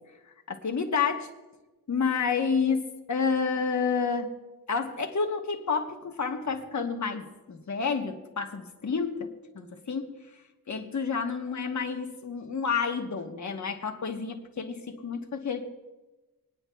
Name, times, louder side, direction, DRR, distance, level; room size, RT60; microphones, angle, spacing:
voice 1, 0.5-1.3 1.9-4.3 4.7-10.2 10.7-15.7, left 5 dB, 50° left, 4 dB, 1.1 m, -29 dB
25.0 x 9.6 x 2.3 m, 1.1 s
wide cardioid pair, 125°, 37 cm